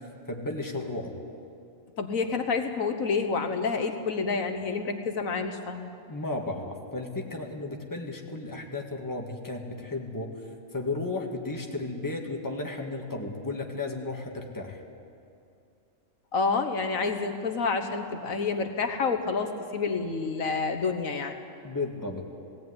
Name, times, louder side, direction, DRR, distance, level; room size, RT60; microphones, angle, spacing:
voice 1, 0.3-1.1 6.1-10.3 10.7-14.8 21.6-22.2, left 2 dB, 15° left, 1 dB, 1.9 m, -34 dB
voice 2, 2.0-5.9 16.3-21.3, left 4 dB, 75° left, 6 dB, 1.6 m, -28 dB
18.0 x 17.0 x 9.7 m, 2.6 s
omnidirectional pair, 1.4 m